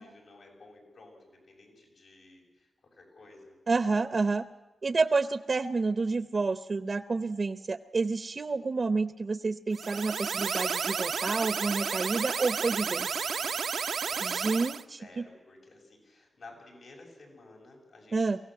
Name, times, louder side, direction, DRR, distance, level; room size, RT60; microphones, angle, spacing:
voice 1, 0.0-3.6 12.9-13.6 13.9-14.5 15.0-18.3, left 2 dB, 80° left, 0 dB, 6.7 m, -54 dB
voice 2, 3.7-4.5 4.8-13.2 14.2-15.2 18.1-18.4, right 3 dB, 45° right, 11 dB, 0.6 m, -29 dB
sound 1, 9.7-14.8, right 6 dB, 90° right, 0.6 m, -32 dB
24.0 x 16.0 x 7.8 m, 1.2 s
wide cardioid pair, 120°, 0 cm